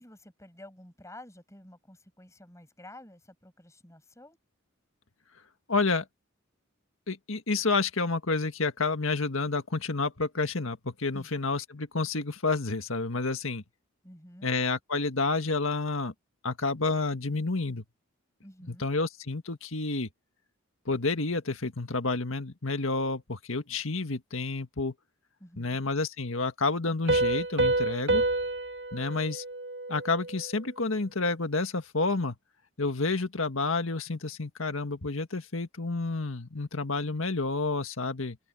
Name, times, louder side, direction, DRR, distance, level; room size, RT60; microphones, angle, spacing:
voice 1, 0.0-4.4 11.1-11.3 14.0-14.5 18.4-18.9 25.4-25.8, left 1 dB, 15° left, 6.0 m, -50 dB
voice 2, 5.7-6.1 7.1-13.6 14.4-16.1 16.4-17.8 18.7-20.1 20.9-24.9 25.6-28.2 28.9-29.4 29.9-32.4 32.8-38.4, left 3 dB, 70° left, 1.8 m, -29 dB
Piano, 27.1-30.5, right 2 dB, 55° right, 2.2 m, -28 dB
head